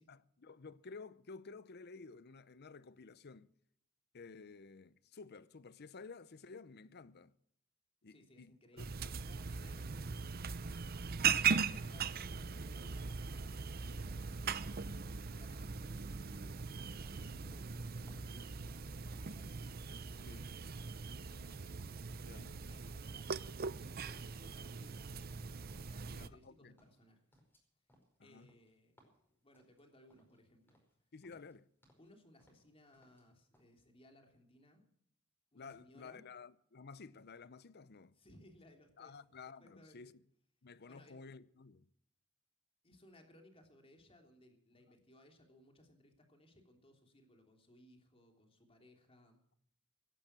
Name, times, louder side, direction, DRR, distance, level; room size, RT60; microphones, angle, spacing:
voice 1, 0.1-3.5 4.1-7.3 8.0-9.2 20.3-20.5 22.2-22.5 26.1-26.7 28.2-28.5 31.1-31.7 35.5-38.1 39.0-40.1 40.6-41.9, left 4 dB, 50° left, 0.7 m, -53 dB
voice 2, 8.0-10.3 11.6-16.7 17.1-20.5 20.9-21.6 22.5-23.4 23.8-27.4 28.2-29.1 29.4-30.8 32.0-34.8 35.5-36.2 38.1-39.2 39.6-40.1 40.8-41.2 42.8-49.4, left 1 dB, 25° left, 3.3 m, -63 dB
sound 1, 8.8-26.3, right 6 dB, 45° right, 0.6 m, -40 dB
sound 2, 16.0-19.9 20.2-22.1 22.3-23.1 23.4-24.3 24.5-26.5 26.8-30.4 30.7-31.0 31.2-32.1 32.4-33.3 33.5-33.7, equal, 10° left, 5.1 m, -71 dB
17.0 x 12.0 x 6.0 m
head